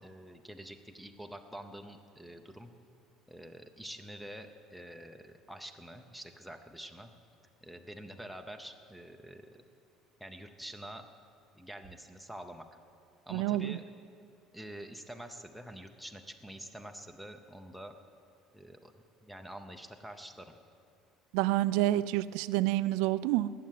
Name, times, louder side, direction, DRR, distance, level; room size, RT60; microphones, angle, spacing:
voice 1, 0.0-2.7 3.3-7.1 7.6-9.6 10.2-11.1 11.5-12.7 13.3-13.8 14.5-18.0 18.5-18.9 19.2-20.5, right 1 dB, ahead, 7 dB, 0.7 m, -47 dB
voice 2, 13.3-13.8 21.3-23.5, right 15 dB, 80° right, 16 dB, 0.4 m, -28 dB
19.0 x 7.7 x 9.3 m, 2.4 s
cardioid pair, 170°, 0 cm